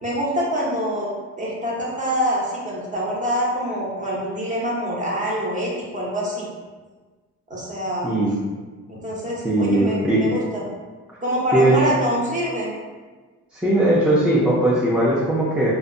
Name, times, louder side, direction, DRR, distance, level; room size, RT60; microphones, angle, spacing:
voice 1, 0.0-1.1 1.4-6.5 7.5-8.1 8.9-10.6 11.2-12.7, equal, 25° right, -5 dB, 0.8 m, -25 dB
voice 2, 8.0-8.3 9.4-10.2 11.5-11.7 13.5-15.7, right 1 dB, 5° right, -8 dB, 0.5 m, -19 dB
2.5 x 2.1 x 2.5 m, 1.3 s
cardioid pair, 90°, 30 cm